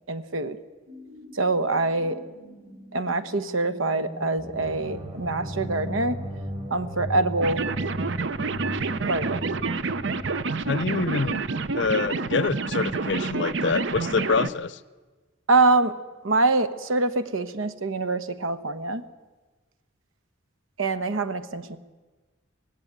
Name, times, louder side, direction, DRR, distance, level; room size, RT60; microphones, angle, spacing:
voice 1, 0.1-0.6 1.3-2.2 2.9-6.2 6.7-7.6 9.1-9.5 15.5-15.9 16.2-19.0 20.8-21.8, right 3 dB, 80° right, 12 dB, 1.2 m, -24 dB
sound 1, 0.9-11.2, right 1 dB, 45° right, 6.0 m, -44 dB
sound 2, 4.4-11.7, equal, 30° right, 2.2 m, -37 dB
sound 3, 7.4-14.5, right 3 dB, 60° right, 0.7 m, -28 dB
voice 2, 10.7-11.4 11.7-14.8, left 4 dB, 60° left, 17 dB, 0.6 m, -26 dB
18.5 x 16.5 x 8.8 m, 1.3 s
head